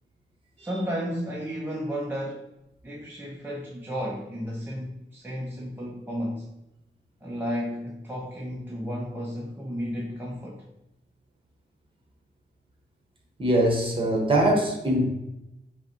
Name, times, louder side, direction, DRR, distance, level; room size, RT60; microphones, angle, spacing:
voice 1, 0.6-2.5 2.8-6.5 7.2-10.6, equal, 10° right, -4 dB, 0.5 m, -33 dB
voice 2, 13.4-15.1, right 1 dB, 30° right, 0 dB, 1.1 m, -22 dB
5.4 x 2.1 x 4.4 m, 0.89 s
wide cardioid pair, 155°, 19 cm